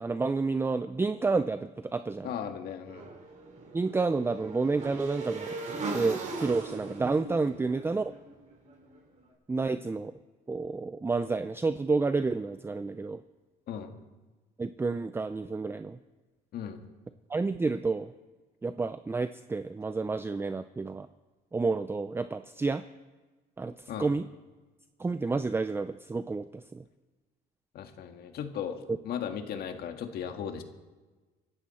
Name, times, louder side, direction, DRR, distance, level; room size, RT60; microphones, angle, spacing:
voice 1, 0.0-2.3 3.7-5.6 5.9-8.1 9.5-10.1 10.5-13.2 14.6-16.0 17.3-18.1 18.6-21.1 21.5-22.8 23.6-23.7 24.0-24.3 25.0-26.8, right 3 dB, 15° right, 11 dB, 0.5 m, -30 dB
voice 2, 2.2-3.1 13.7-14.0 16.5-16.8 23.9-24.1 27.7-30.6, left 8 dB, 65° left, 6 dB, 1.8 m, -37 dB
Motorcycle / Engine, 2.9-9.0, right 3 dB, 45° right, 4.2 m, -39 dB
25.0 x 12.0 x 4.3 m, 1.3 s
cardioid pair, 110°, 17 cm